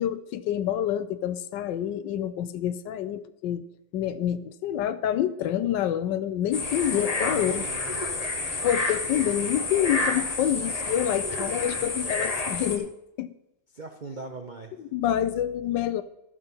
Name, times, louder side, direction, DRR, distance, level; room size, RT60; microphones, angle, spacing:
voice 1, 0.0-3.7 3.9-7.6 8.6-12.9 13.2-13.3 14.9-16.0, left 10 dB, 80° left, 13 dB, 1.2 m, -27 dB
sound 1, 6.5-12.8, left 3 dB, 35° left, 0.7 m, -29 dB
voice 2, 6.9-8.0 13.7-14.7, right 3 dB, 65° right, 4 dB, 0.4 m, -40 dB
12.5 x 6.1 x 5.4 m, 0.88 s
omnidirectional pair, 2.0 m